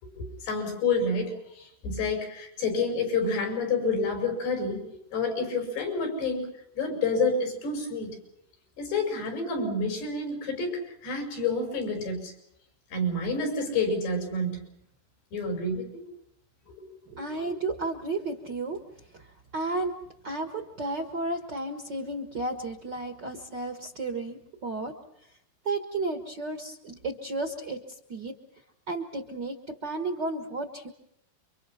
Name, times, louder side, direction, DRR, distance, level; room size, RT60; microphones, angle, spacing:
voice 1, 0.0-6.5 6.8-8.2 8.8-12.3 12.9-14.6 15.3-16.0 16.8-16.9 17.4-17.5, left 3 dB, 85° left, 4 dB, 8.0 m, -29 dB
voice 2, 17.1-18.8 19.1-20.0 20.2-24.9 25.6-28.3 28.9-30.9, right 2 dB, 85° right, 5 dB, 0.9 m, -33 dB
29.0 x 24.5 x 5.8 m, 0.75 s
omnidirectional pair, 4.7 m